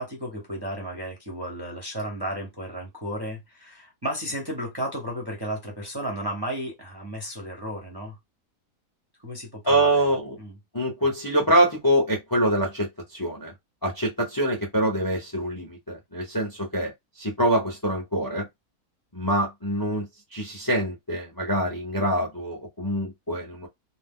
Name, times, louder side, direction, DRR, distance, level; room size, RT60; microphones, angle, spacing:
voice 1, 0.0-8.2 9.2-10.1 10.4-10.5, equal, 20° right, 0.7 m, -33 dB
voice 2, 9.6-10.3 10.7-13.5 13.8-16.9 17.2-18.5 19.1-20.1 20.3-23.7, right 1 dB, 20° left, 0.6 m, -25 dB
2.7 x 2.1 x 3.6 m
omnidirectional pair, 1.6 m